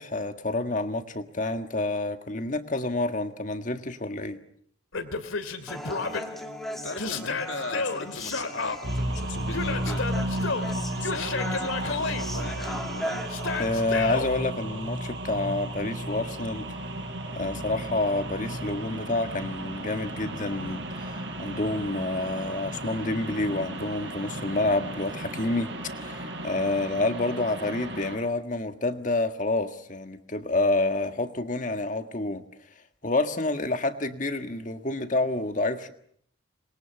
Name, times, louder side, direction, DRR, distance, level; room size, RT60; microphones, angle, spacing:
voice 1, 0.0-4.4 10.7-10.8 13.6-16.8 17.3-32.5 33.0-35.9, left 2 dB, 40° left, 1.7 m, -28 dB
Yell, 4.9-6.2 7.0-8.8 9.5-10.7 11.0-12.2 13.3-14.3, left 4 dB, 80° left, 2.6 m, -31 dB
Human voice, 5.7-13.7, equal, ahead, 2.4 m, -38 dB
voice 2, 6.7-10.1 10.9-13.2, left 3 dB, 65° left, 2.5 m, -38 dB
sound 1, 8.8-28.2, right 1 dB, 60° right, 5.8 m, -34 dB
27.5 x 22.0 x 7.1 m
head